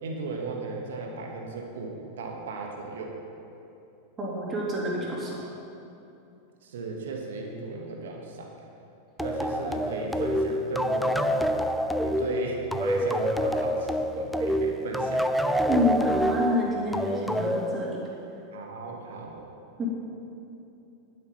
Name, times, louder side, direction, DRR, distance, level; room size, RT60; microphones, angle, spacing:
voice 1, 0.0-3.2 6.6-8.5 9.2-11.6 12.0-15.4 18.5-19.5, right 4 dB, 60° right, 1 dB, 1.4 m, -36 dB
voice 2, 4.2-5.4 15.6-18.0 19.8-19.9, left 1 dB, 20° right, -4 dB, 3.0 m, -28 dB
sound 1, 9.2-18.4, equal, ahead, 0.5 m, -27 dB
11.0 x 9.2 x 5.6 m, 2.7 s
figure-of-eight pair, 90°, 0 cm